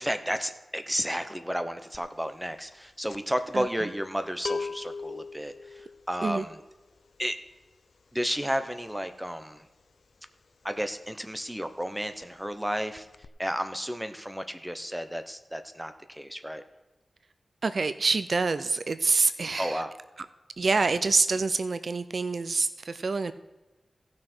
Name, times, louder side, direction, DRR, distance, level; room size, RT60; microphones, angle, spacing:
voice 1, 0.0-6.6 7.2-7.4 8.1-9.7 10.6-13.1 13.4-16.6 19.6-19.9, equal, 5° right, 9 dB, 0.8 m, -32 dB
sound 1, 1.9-2.2 2.5-11.1 11.3-11.6 11.8-12.7 12.9-13.3, left 4 dB, 75° left, 0.4 m, -40 dB
voice 2, 17.6-19.8 20.6-23.3, right 4 dB, 60° right, 13 dB, 0.4 m, -26 dB
16.5 x 6.3 x 4.4 m, 1.1 s
wide cardioid pair, 110°, 0 cm